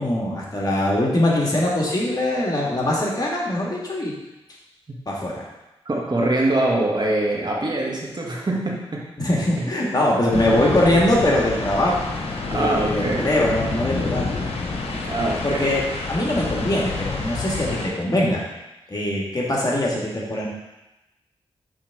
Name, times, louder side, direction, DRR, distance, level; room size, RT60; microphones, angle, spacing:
voice 1, 0.0-4.1 5.1-5.5 9.2-12.0 12.4-14.3 15.4-15.8 16.1-18.5 18.9-20.5, left 1 dB, 40° left, -4 dB, 1.7 m, -22 dB
voice 2, 5.8-9.0 9.6-9.9 12.5-13.3 15.1-15.8, right 2 dB, 45° right, -2 dB, 1.4 m, -24 dB
sound 1, 10.3-17.9, left 3 dB, 80° left, 0.8 m, -28 dB
6.3 x 3.5 x 4.6 m, 0.97 s
cardioid pair, 55°, 10 cm